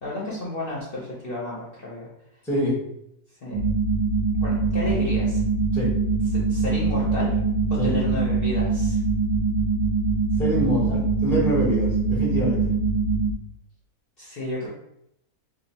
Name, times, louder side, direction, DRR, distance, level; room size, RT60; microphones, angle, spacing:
voice 1, 0.0-2.1 3.4-3.6 4.4-5.4 6.5-7.4 7.7-9.0 14.2-14.7, left 1 dB, 50° left, -6 dB, 0.8 m, -32 dB
voice 2, 2.4-2.8 5.7-5.9 7.8-7.9 10.4-12.7, right 1 dB, ahead, -5 dB, 0.7 m, -25 dB
sound 1, 3.5-13.3, right 3 dB, 50° right, 1.0 m, -23 dB
2.7 x 2.1 x 4.1 m, 0.78 s
omnidirectional pair, 1.6 m